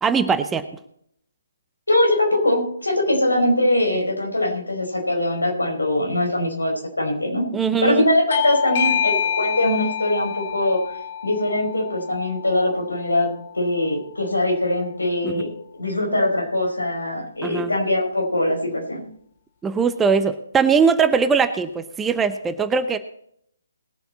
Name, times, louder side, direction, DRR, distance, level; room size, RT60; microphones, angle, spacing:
voice 1, 0.0-0.6 7.5-8.0 15.2-15.4 17.4-17.7 19.6-23.0, right 5 dB, 10° right, 10 dB, 0.7 m, -20 dB
voice 2, 1.9-7.4 7.8-10.8 11.2-19.0, left 1 dB, 80° left, 1 dB, 4.9 m, -22 dB
Bell / Doorbell, 8.3-13.5, left 9 dB, 40° left, 0.7 m, -27 dB
20.5 x 8.0 x 4.2 m, 0.70 s
figure-of-eight pair, 135°, 0 cm